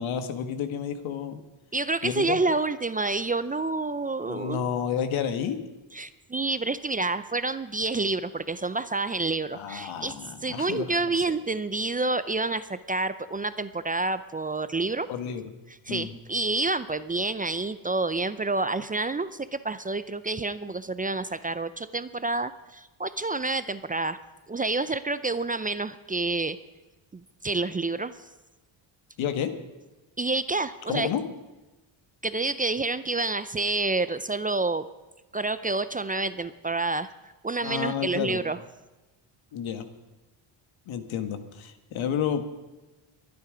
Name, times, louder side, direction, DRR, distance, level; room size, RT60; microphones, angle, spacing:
voice 1, 0.0-1.4 2.0-2.4 4.3-5.6 9.5-11.1 15.1-15.4 15.9-16.1 29.2-29.5 30.9-31.2 37.6-38.4 39.5-39.9 40.9-42.4, left 8 dB, 80° left, 8 dB, 1.6 m, -30 dB
voice 2, 1.7-4.7 5.9-10.1 10.4-15.1 15.9-24.2 24.5-26.6 27.1-28.2 30.2-31.1 32.2-34.9 35.3-37.1 37.4-38.6, right 3 dB, 20° right, 13 dB, 0.5 m, -28 dB
22.5 x 9.6 x 5.1 m, 1.1 s
cardioid pair, 105°, 47 cm